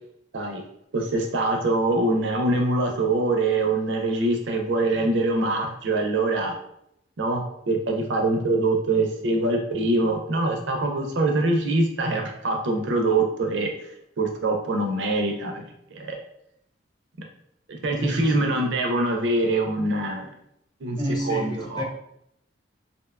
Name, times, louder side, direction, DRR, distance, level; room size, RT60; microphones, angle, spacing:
voice 1, 0.9-6.5 7.2-13.7 14.2-16.2 17.7-20.3 20.8-21.0 21.2-21.8, right 2 dB, 75° right, 2 dB, 0.5 m, -24 dB
voice 2, 18.0-18.5 21.0-21.8, equal, 20° left, -1 dB, 0.4 m, -30 dB
2.6 x 2.1 x 2.3 m, 0.76 s
head